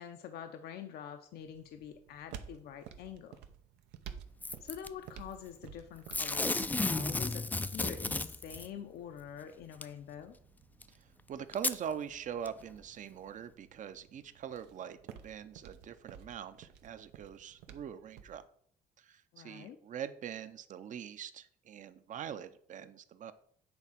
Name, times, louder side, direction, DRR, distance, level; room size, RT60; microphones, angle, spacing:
voice 1, 0.0-3.4 4.6-10.4 19.3-19.8, left 8 dB, 70° left, 7 dB, 0.7 m, -46 dB
sound 1, 1.4-18.4, right 8 dB, 85° right, 0.8 m, -54 dB
Packing tape duct tape / Tearing, 4.4-4.9 6.1-8.7 9.8-9.9 10.8-10.9 11.5-11.8 12.5-12.6, left 2 dB, 10° left, 0.3 m, -33 dB
voice 2, 11.3-15.0 15.2-18.4 19.0-23.3, right 8 dB, 50° right, 12 dB, 0.7 m, -43 dB
8.7 x 3.6 x 5.8 m, 0.63 s
cardioid pair, 110°, 17 cm